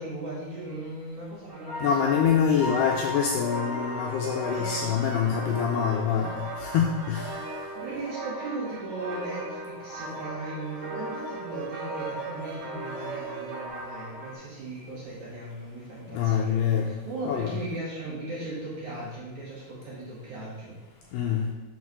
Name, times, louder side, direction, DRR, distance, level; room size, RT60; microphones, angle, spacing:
voice 1, 0.0-2.3 4.4-4.9 7.7-20.8, right 2 dB, 55° right, -7 dB, 2.5 m, -37 dB
sound 1, 1.5-14.3, left 1 dB, 10° right, 1.1 m, -38 dB
voice 2, 1.8-7.4 16.1-17.0 17.3-17.5 21.1-21.5, left 7 dB, 85° left, 0 dB, 2.4 m, -25 dB
sound 2, 2.9-13.7, right 7 dB, 90° right, 2.2 m, -42 dB
6.7 x 4.6 x 5.9 m, 1.1 s
omnidirectional pair, 5.2 m